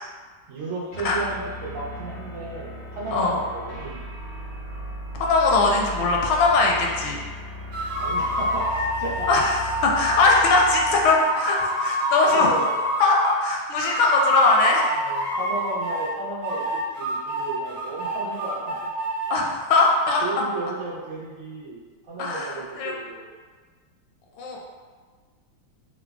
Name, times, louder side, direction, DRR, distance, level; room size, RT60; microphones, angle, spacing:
voice 1, 0.5-4.1 8.0-9.4 12.3-12.8 15.0-18.9 20.2-23.3, right 3 dB, 85° right, -5 dB, 1.5 m, -34 dB
sound 1, 0.9-11.2, equal, 65° left, 0.6 m, -37 dB
voice 2, 5.1-7.2 9.3-12.5 13.0-14.9 19.3-20.2 22.2-22.9 24.4-24.6, left 3 dB, 80° left, -1 dB, 1.4 m, -20 dB
sound 2, 7.7-13.4 13.8-16.1 16.4-19.3, equal, 60° right, 1.4 m, -27 dB
4.6 x 2.1 x 2.3 m, 1.5 s
omnidirectional pair, 2.2 m